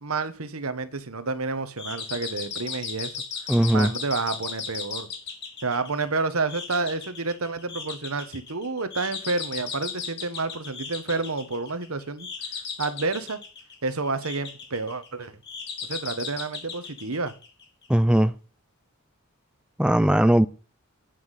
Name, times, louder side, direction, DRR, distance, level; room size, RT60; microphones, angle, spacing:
voice 1, 0.0-3.2 3.7-5.1 5.6-12.3 12.8-13.4 13.8-15.4 15.8-17.3, right 3 dB, 75° right, 1.4 m, -29 dB
sound 1, 1.8-17.9, left 6 dB, 55° left, 3.1 m, -37 dB
voice 2, 3.5-3.9 17.9-18.3 19.8-20.5, right 1 dB, 5° right, 0.5 m, -19 dB
9.7 x 5.9 x 8.2 m
head